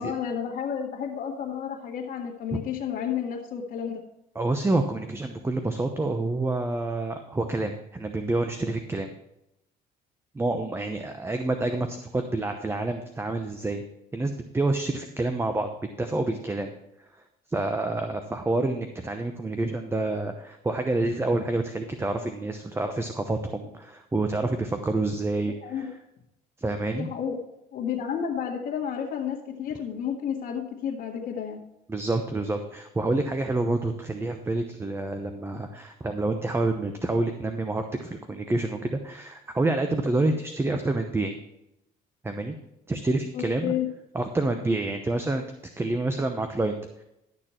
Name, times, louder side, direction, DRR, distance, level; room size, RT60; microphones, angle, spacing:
voice 1, 0.0-4.0 25.5-25.9 27.0-27.4 27.7-31.6 43.3-43.9, left 8 dB, 60° left, -4 dB, 1.7 m, -31 dB
voice 2, 4.3-9.1 10.3-13.8 14.1-15.7 16.0-16.7 17.1-17.2 17.5-25.9 26.6-27.1 31.9-41.4 42.2-42.5 42.9-43.8 44.1-45.4 45.8-47.0, right 2 dB, 15° right, 6 dB, 0.8 m, -28 dB
12.0 x 6.7 x 4.4 m, 0.84 s
cardioid pair, 110°, 17 cm